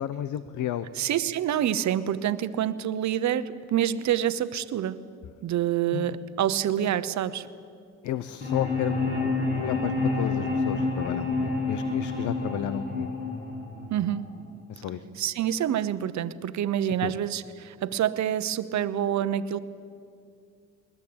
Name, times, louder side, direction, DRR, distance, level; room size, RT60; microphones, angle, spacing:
voice 1, 0.0-0.9 5.9-6.2 8.0-13.1 14.7-15.1 17.0-17.1, left 11 dB, 75° left, 13 dB, 0.9 m, -32 dB
voice 2, 1.0-5.0 5.4-7.5 13.9-14.2 15.2-19.6, right 10 dB, 65° right, 13 dB, 1.0 m, -27 dB
sound 1, 8.4-14.4, left 3 dB, 30° left, 7.7 m, -28 dB
21.5 x 20.0 x 8.8 m, 2.4 s
cardioid pair, 90°, 30 cm